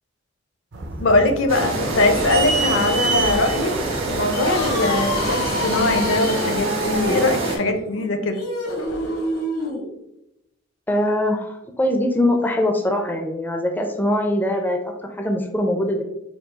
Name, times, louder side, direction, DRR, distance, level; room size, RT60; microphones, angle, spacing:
sound 1, 0.7-6.3, right 3 dB, 60° right, 0.6 m, -29 dB
voice 1, 1.0-8.4, left 2 dB, 65° left, 6 dB, 0.5 m, -21 dB
sound 2, 1.5-7.6, right 2 dB, 85° right, 1.2 m, -26 dB
sound 3, 4.2-9.8, left 1 dB, 80° left, 1.0 m, -27 dB
voice 2, 10.9-16.0, left 1 dB, 10° left, 3 dB, 0.4 m, -22 dB
4.6 x 2.3 x 3.8 m, 0.85 s
head